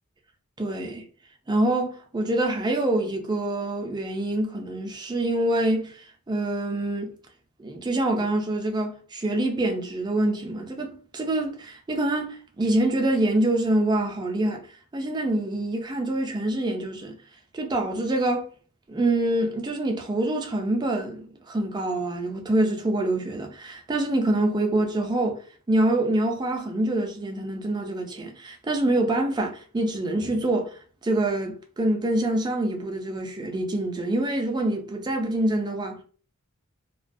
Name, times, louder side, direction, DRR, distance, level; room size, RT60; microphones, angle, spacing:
voice 1, 0.6-1.1 1.5-7.1 7.6-14.6 14.9-17.2 17.5-18.5 18.9-25.4 25.7-36.0, right 1 dB, 20° right, 0.4 m, -26 dB
2.3 x 2.1 x 2.5 m
head